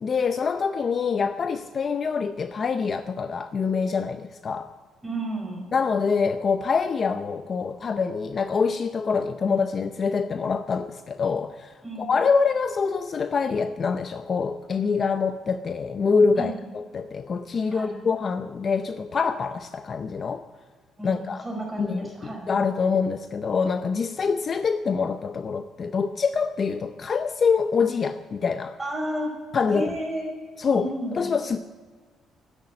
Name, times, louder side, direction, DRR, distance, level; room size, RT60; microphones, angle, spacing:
voice 1, 0.0-4.7 5.7-20.5 21.0-21.4 21.8-28.8 29.5-29.9 30.6-31.6, left 5 dB, 40° left, 0.5 m, -25 dB
voice 2, 5.0-5.6 11.8-12.1 16.4-16.6 17.7-17.9 21.0-22.5 28.8-29.3 29.7-30.3 30.7-31.2, right 1 dB, 10° right, 4.9 m, -32 dB
12.0 x 10.5 x 8.5 m
cardioid pair, 120°, 0 cm